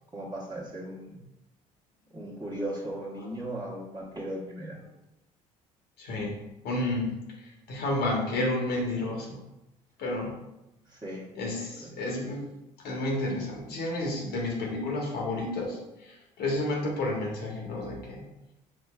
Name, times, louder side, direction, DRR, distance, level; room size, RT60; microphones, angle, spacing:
voice 1, 0.1-1.2 2.1-4.8 10.9-11.3, right 1 dB, 20° right, -4 dB, 1.2 m, -37 dB
voice 2, 6.0-9.4 10.0-10.3 11.3-12.5 12.8-18.2, left 2 dB, 60° left, -1 dB, 1.1 m, -31 dB
5.0 x 3.1 x 2.3 m, 0.93 s
hypercardioid pair, 55°, 19 cm